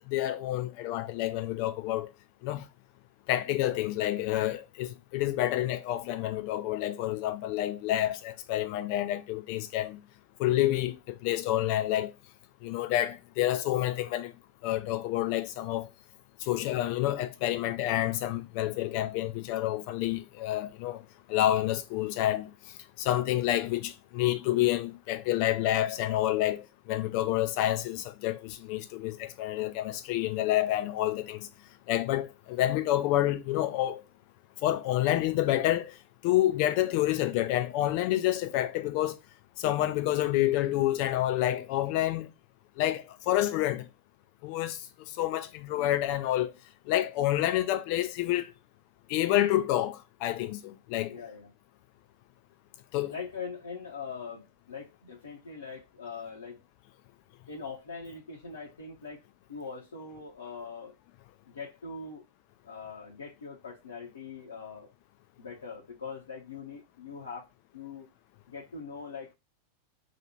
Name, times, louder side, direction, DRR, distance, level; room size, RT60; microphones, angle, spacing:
voice 1, 0.1-2.1 2.4-2.6 3.3-10.0 10.4-12.1 12.6-14.3 14.6-15.9 16.4-21.0 21.3-22.5 23.0-31.5 31.9-34.0 34.6-36.0 36.2-39.2 39.6-42.3 42.8-43.9 44.4-44.9 45.2-46.5 46.9-48.5 49.1-51.1 52.9-53.1, left 14 dB, 45° left, 0.5 m, -28 dB
voice 2, 51.0-51.5 53.1-56.6 57.5-59.2 59.5-60.9 61.5-62.2 62.6-64.9 65.4-67.5 67.7-68.1 68.5-69.3, left 5 dB, 70° left, 0.8 m, -42 dB
2.9 x 2.5 x 4.1 m
figure-of-eight pair, 90°, 0 cm